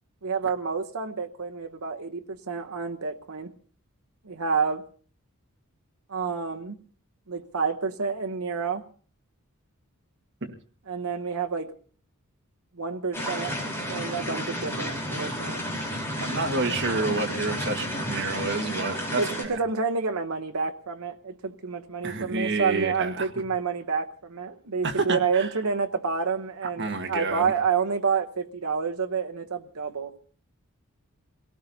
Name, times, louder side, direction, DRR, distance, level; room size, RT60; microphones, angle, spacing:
voice 1, 0.2-3.5 4.2-4.8 6.1-6.8 7.3-8.8 10.9-11.7 12.8-13.6 13.9-15.6 19.2-30.2, right 5 dB, 75° right, 4 dB, 1.0 m, -29 dB
sound 1, 13.1-19.4, equal, 15° left, 3.7 m, -31 dB
voice 2, 16.2-19.2 22.0-23.3 24.8-25.5 26.8-27.5, right 3 dB, 55° right, 3 dB, 1.8 m, -29 dB
27.5 x 18.0 x 2.8 m, 0.43 s
head